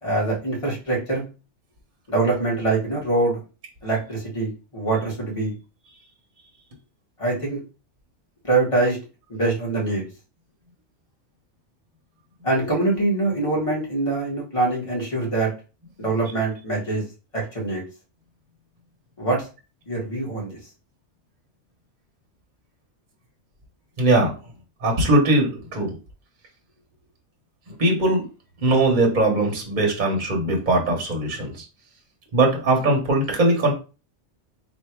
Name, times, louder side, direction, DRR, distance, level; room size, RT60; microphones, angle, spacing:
voice 1, 0.0-1.3 2.1-3.4 3.8-5.5 7.2-7.6 8.4-9.0 9.3-10.0 12.4-15.5 16.0-17.0 17.3-17.8 19.2-19.4 19.9-20.6, right 2 dB, 25° left, -4 dB, 1.7 m, -24 dB
voice 2, 24.0-24.3 24.8-25.9 27.8-28.2 28.6-31.5 32.3-33.7, right 2 dB, 40° right, 0 dB, 1.1 m, -20 dB
3.4 x 2.6 x 4.4 m, 0.33 s
omnidirectional pair, 1.3 m